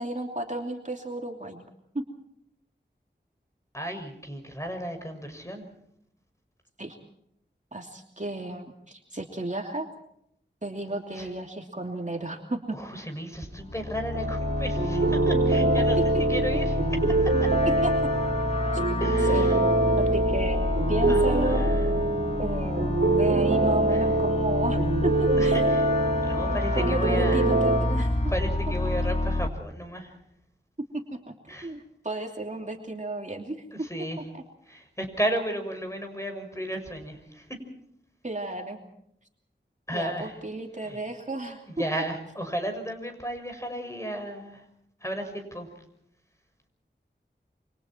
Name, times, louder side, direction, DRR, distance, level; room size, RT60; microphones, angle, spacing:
voice 1, 0.0-1.6 1.9-2.0 6.8-7.0 7.7-9.9 10.6-12.8 16.1-16.2 17.8-17.9 18.7-18.9 19.3-19.5 20.0-20.6 20.9-21.7 22.4-25.5 26.3-28.2 30.9-31.3 31.6-33.6 38.2-38.8 39.9-41.6, right 2 dB, 40° right, 2 dB, 2.9 m, -33 dB
voice 2, 3.7-5.7 11.1-11.3 12.7-16.8 17.2-17.5 19.0-19.6 21.1-21.9 23.9-24.1 25.4-27.5 28.3-30.2 31.5-31.8 33.7-34.3 34.6-37.6 39.9-40.4 40.8-41.0 41.7-44.7 45.0-45.7, equal, 15° left, 5 dB, 6.3 m, -34 dB
sound 1, 13.6-29.5, left 1 dB, 35° left, 2.1 m, -28 dB
sound 2, 14.1-27.8, right 2 dB, 90° right, 3.0 m, -25 dB
28.5 x 25.5 x 4.5 m, 0.73 s
wide cardioid pair, 50°, 19 cm